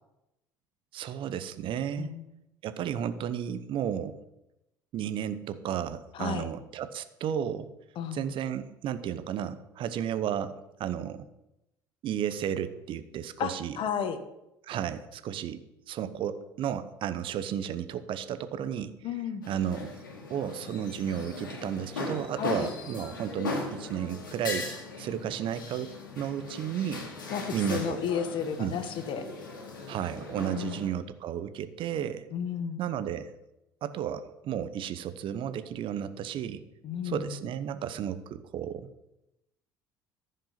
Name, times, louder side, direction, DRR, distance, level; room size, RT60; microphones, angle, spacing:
voice 1, 0.9-2.1 2.6-4.2 4.9-7.7 8.1-11.3 12.0-13.8 14.6-18.9 19.5-19.9 20.3-24.7 25.0-27.1 27.5-28.0 28.6-28.7 29.9-32.3 32.8-33.3 33.8-36.6 37.0-38.9, right 9 dB, 55° right, 12 dB, 0.9 m, -33 dB
voice 2, 6.1-6.5 7.9-8.3 13.4-14.2 19.0-19.4 22.4-22.7 27.3-29.2 30.5-30.8 32.3-32.8 36.8-37.4, left 7 dB, 55° left, 10 dB, 1.4 m, -33 dB
sound 1, 19.4-30.9, left 3 dB, 85° left, 2.0 m, -39 dB
14.0 x 5.3 x 5.9 m, 0.89 s
hypercardioid pair, 60°, 10 cm